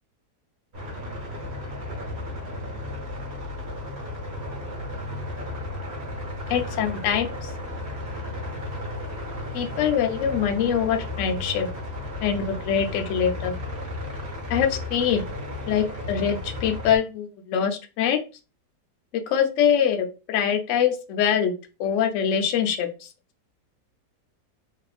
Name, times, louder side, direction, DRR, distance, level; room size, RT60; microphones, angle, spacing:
sound 1, 0.7-17.0, left 1 dB, 50° right, 0.8 m, -34 dB
voice 1, 6.5-7.5 9.5-11.7 12.2-13.5 14.5-15.3 15.7-18.2 19.1-21.5 21.8-23.1, left 8 dB, 85° left, 5 dB, 0.6 m, -24 dB
2.8 x 2.4 x 2.3 m, 0.31 s
omnidirectional pair, 1.9 m